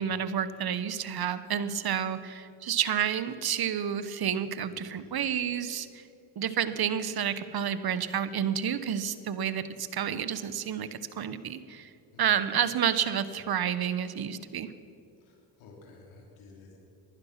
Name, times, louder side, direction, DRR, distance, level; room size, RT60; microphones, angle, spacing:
voice 1, 0.0-5.9 6.4-11.9 12.2-14.7, right 8 dB, 50° right, 13 dB, 1.0 m, -30 dB
voice 2, 4.7-5.2 12.1-12.2 15.2-16.8, left 3 dB, 90° left, 0 dB, 2.9 m, -54 dB
18.5 x 11.5 x 5.9 m, 2.6 s
supercardioid pair, 70°, 48 cm